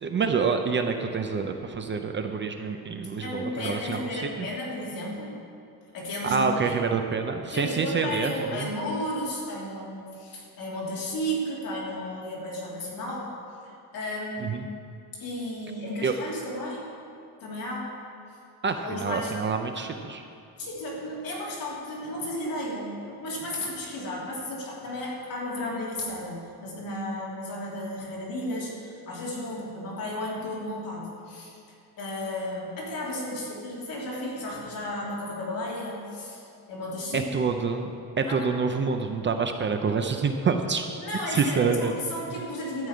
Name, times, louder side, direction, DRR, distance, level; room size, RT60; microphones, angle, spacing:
voice 1, 0.0-4.5 6.2-8.7 14.4-14.7 16.0-16.1 18.6-20.2 37.1-37.9 38.2-40.8 41.3-41.9, right 5 dB, 30° right, 5 dB, 0.5 m, -27 dB
voice 2, 3.2-5.3 5.9-6.6 7.5-13.3 13.6-14.6 15.1-16.8 17.4-17.9 18.8-19.3 19.8-19.9 20.6-31.6 32.0-37.3 38.3-38.5 41.0-42.9, left 1 dB, 65° left, -5 dB, 3.2 m, -33 dB
12.5 x 5.5 x 8.6 m, 2.5 s
cardioid pair, 175°, 37 cm